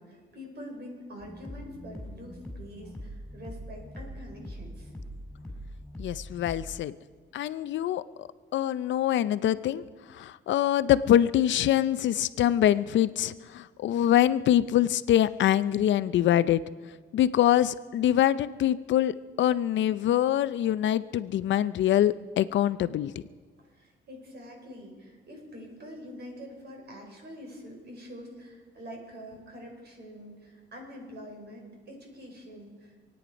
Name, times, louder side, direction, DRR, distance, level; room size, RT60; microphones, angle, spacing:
voice 1, 0.0-4.9 23.7-32.9, equal, 55° right, 1 dB, 5.0 m, -45 dB
sound 1, 1.2-6.8, equal, 5° left, 4.6 m, -42 dB
voice 2, 6.0-6.9 7.3-8.3 8.5-9.8 10.1-16.6 17.1-23.1, left 11 dB, 70° left, 15 dB, 0.6 m, -24 dB
27.0 x 9.4 x 5.1 m, 1.5 s
cardioid pair, 90°, 20 cm